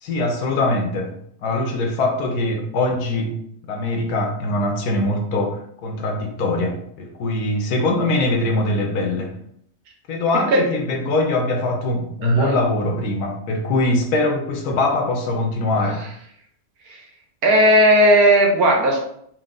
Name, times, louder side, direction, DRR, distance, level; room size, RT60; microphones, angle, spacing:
voice 1, 0.0-1.1 1.4-3.4 3.7-9.3 10.1-16.1, left 2 dB, 80° left, 2 dB, 1.3 m, -22 dB
voice 2, 12.2-12.6 16.9-17.0 17.4-19.0, equal, 70° right, 1 dB, 1.4 m, -15 dB
4.5 x 2.2 x 3.8 m, 0.68 s
omnidirectional pair, 1.7 m